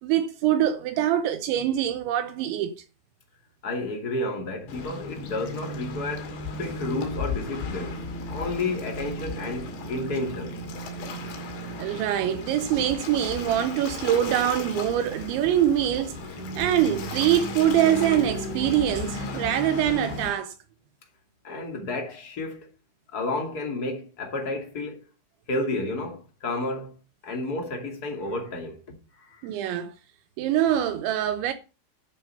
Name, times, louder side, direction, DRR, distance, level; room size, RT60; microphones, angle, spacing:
voice 1, 0.0-2.8 11.8-16.2 16.6-20.5 29.4-29.9 30.4-31.5, right 11 dB, 80° right, 2.9 m, -24 dB
voice 2, 3.6-7.9 8.3-10.6 21.4-22.7 23.1-25.1 25.5-26.9 27.2-29.5, left 2 dB, 35° left, 1.7 m, -31 dB
Waves surf, 4.7-20.3, left 2 dB, 60° left, 4.2 m, -35 dB
11.0 x 7.3 x 5.7 m
omnidirectional pair, 5.8 m